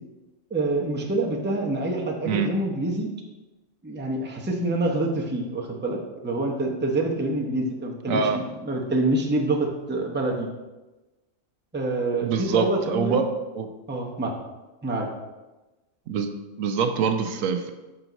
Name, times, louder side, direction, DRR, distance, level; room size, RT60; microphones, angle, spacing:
voice 1, 0.5-3.1 3.8-10.5 11.7-13.3 13.9-14.3 14.8-15.1, right 2 dB, 10° right, -1 dB, 0.7 m, -26 dB
voice 2, 8.1-8.4 12.2-13.3 13.5-13.7 16.1-16.3 16.6-17.7, right 6 dB, 90° right, 7 dB, 1.1 m, -24 dB
6.2 x 6.0 x 4.0 m, 1.1 s
omnidirectional pair, 1.3 m